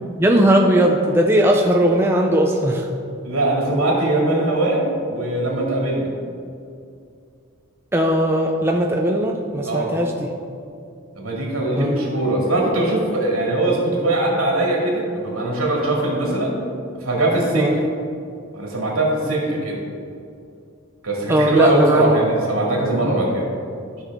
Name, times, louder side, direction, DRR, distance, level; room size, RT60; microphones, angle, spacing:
voice 1, 0.2-2.9 7.9-10.3 11.8-12.0 17.5-17.8 21.3-22.2 23.0-23.2, right 1 dB, 10° right, 1 dB, 0.4 m, -18 dB
voice 2, 3.2-6.1 9.6-9.9 11.1-16.6 17.0-17.8 18.5-19.8 21.0-23.5, right 1 dB, 75° right, -2 dB, 2.3 m, -21 dB
13.0 x 5.8 x 3.6 m, 2.4 s
head